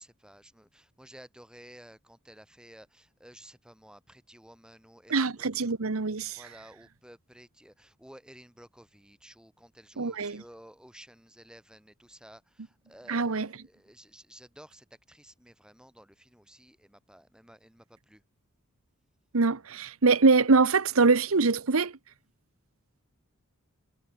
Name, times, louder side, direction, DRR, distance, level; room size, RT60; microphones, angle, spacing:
voice 1, 0.0-5.5 6.2-18.2, equal, 5° right, 3.0 m, -53 dB
voice 2, 5.1-6.5 10.0-10.4 13.1-13.5 19.3-22.0, right 4 dB, 75° right, 1.0 m, -24 dB
head